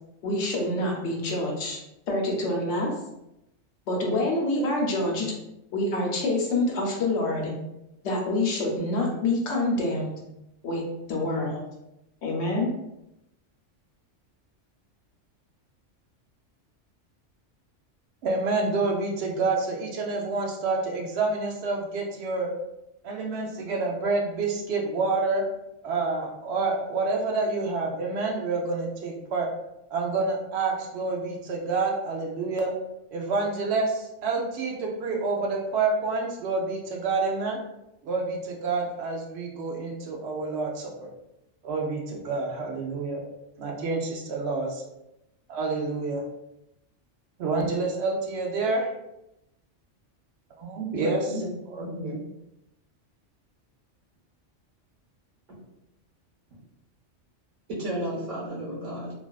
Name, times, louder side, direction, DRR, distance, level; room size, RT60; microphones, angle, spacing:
voice 1, 0.2-1.8 2.1-2.9 3.9-5.3 5.7-7.5 8.0-10.1 10.6-10.8 11.1-11.7 12.2-12.7, left 2 dB, 70° left, 0 dB, 0.9 m, -26 dB
voice 2, 18.2-22.5 23.0-25.4 25.8-29.5 29.9-32.7 33.1-37.6 38.0-41.1 41.6-43.2 43.6-44.8 45.5-46.2 47.4-48.9 50.6-51.2 51.7-51.8, right 3 dB, 65° right, 0 dB, 0.8 m, -28 dB
voice 3, 50.9-51.5 51.8-52.2 55.5-55.6 56.5-56.6 57.8-59.1, equal, 40° right, -7 dB, 1.1 m, -33 dB
2.4 x 2.3 x 2.2 m, 0.88 s
omnidirectional pair, 1.3 m